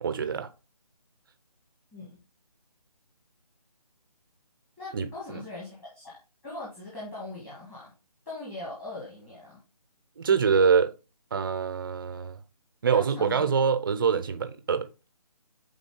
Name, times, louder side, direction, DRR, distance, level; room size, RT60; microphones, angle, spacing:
voice 1, 0.0-0.5 4.9-5.4 10.2-10.9 11.3-12.4 12.8-14.9, right 6 dB, 35° right, 0.6 m, -25 dB
voice 2, 4.8-6.2 6.4-7.9 8.2-9.6 12.9-13.5, left 2 dB, 10° left, 1.6 m, -40 dB
8.8 x 3.8 x 3.7 m
figure-of-eight pair, 155°, 20 cm